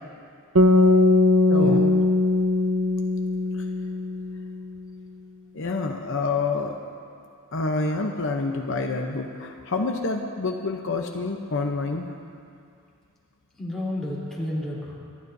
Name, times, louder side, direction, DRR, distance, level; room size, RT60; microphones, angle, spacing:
sound 1, 0.5-4.8, left 2 dB, 85° right, 0.9 m, -20 dB
voice 1, 1.5-1.9 3.5-3.7 5.5-6.7 7.5-12.1, left 3 dB, 60° left, 3 dB, 0.8 m, -27 dB
voice 2, 13.5-15.0, left 1 dB, ahead, -8 dB, 3.5 m, -31 dB
26.0 x 12.0 x 2.7 m, 2.4 s
head